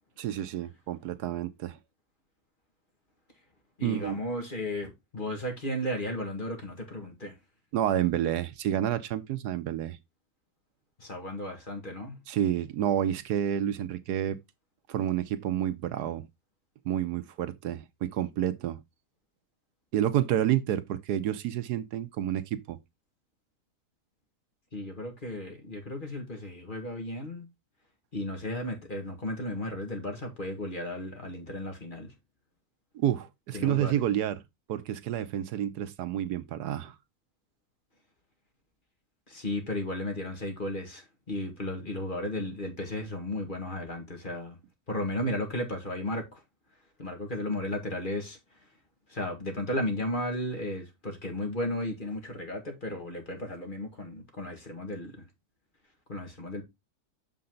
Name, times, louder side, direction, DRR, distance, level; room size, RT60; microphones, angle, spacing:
voice 1, 0.2-1.8 3.8-4.2 7.7-10.0 12.3-14.4 14.9-16.2 16.8-18.8 19.9-22.8 32.9-34.4 34.7-37.0, right 11 dB, 80° right, 1.3 m, -29 dB
voice 2, 3.8-7.3 11.0-12.2 24.7-27.5 28.1-32.1 33.5-34.0 39.3-44.6 44.9-46.4 47.0-48.4 49.1-55.3 56.1-56.6, left 1 dB, 30° left, 1.9 m, -34 dB
6.7 x 5.5 x 3.8 m
omnidirectional pair, 1.7 m